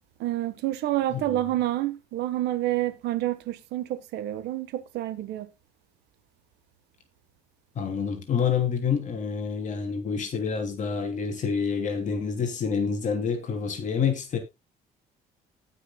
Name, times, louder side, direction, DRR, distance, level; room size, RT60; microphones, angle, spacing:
voice 1, 0.2-5.5, right 14 dB, 80° right, 1.5 m, -28 dB
voice 2, 7.7-14.4, left 6 dB, 45° left, 3.2 m, -28 dB
19.0 x 6.4 x 2.4 m
cardioid pair, 110°, 17 cm